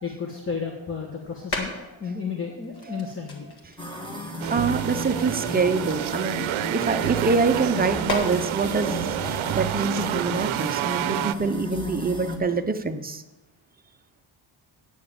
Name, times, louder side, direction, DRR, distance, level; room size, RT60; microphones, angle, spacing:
voice 1, 0.0-3.5 6.7-6.8, left 5 dB, 30° left, 0 dB, 1.2 m, -33 dB
sound 1, 1.2-2.2 2.6-6.7 7.0-10.7, left 2 dB, 55° left, 2.1 m, -37 dB
sound 2, 3.8-12.4, equal, 10° left, 1.4 m, -35 dB
sound 3, 4.4-11.4, right 13 dB, 80° right, 0.6 m, -29 dB
voice 2, 4.5-13.2, right 4 dB, 20° right, 7 dB, 0.6 m, -25 dB
8.7 x 7.2 x 8.7 m, 1.0 s
wide cardioid pair, 165°, 47 cm